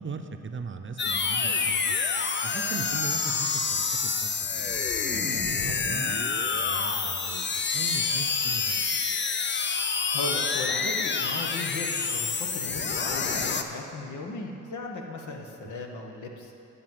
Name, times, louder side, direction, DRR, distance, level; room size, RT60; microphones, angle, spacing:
voice 1, 0.0-1.9 2.4-4.7 5.1-7.4 7.7-9.0, right 5 dB, 40° right, 6 dB, 0.7 m, -39 dB
sound 1, 1.0-13.6, left 5 dB, 40° left, 0.6 m, -27 dB
voice 2, 10.1-16.5, left 3 dB, 75° left, 2 dB, 1.1 m, -37 dB
10.0 x 4.1 x 7.6 m, 2.9 s
cardioid pair, 55°, 30 cm